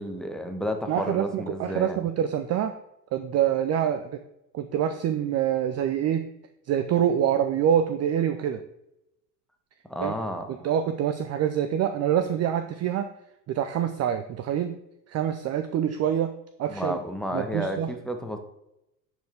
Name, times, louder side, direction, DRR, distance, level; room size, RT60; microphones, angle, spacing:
voice 1, 0.0-2.0 9.9-10.7 16.7-18.4, equal, ahead, 5 dB, 1.1 m, -31 dB
voice 2, 0.9-2.7 3.1-4.1 4.5-6.2 6.7-8.6 10.0-10.1 10.6-13.1 13.5-14.8 15.1-16.3 16.6-17.0 17.3-17.9, right 9 dB, 35° right, 9 dB, 0.5 m, -25 dB
10.0 x 4.6 x 3.5 m, 0.85 s
hypercardioid pair, 80°, 49 cm